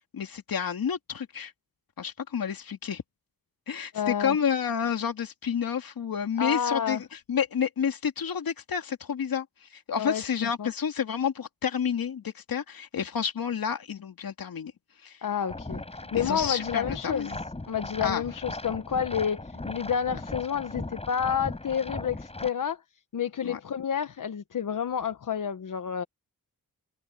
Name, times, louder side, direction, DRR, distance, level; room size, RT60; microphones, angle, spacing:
voice 1, 0.1-1.5 2.0-3.0 3.7-14.7 15.0-15.2 16.1-17.3 18.0-18.2 23.4-23.6, left 7 dB, 80° left, 2.7 m, -30 dB
voice 2, 3.9-4.4 6.4-7.0 10.0-10.3 10.6-10.7 15.2-22.8 23.1-26.0, left 8 dB, 65° left, 1.1 m, -30 dB
sound 1, 15.5-22.5, left 2 dB, 15° left, 7.3 m, -38 dB
wide cardioid pair, 180°, 35 cm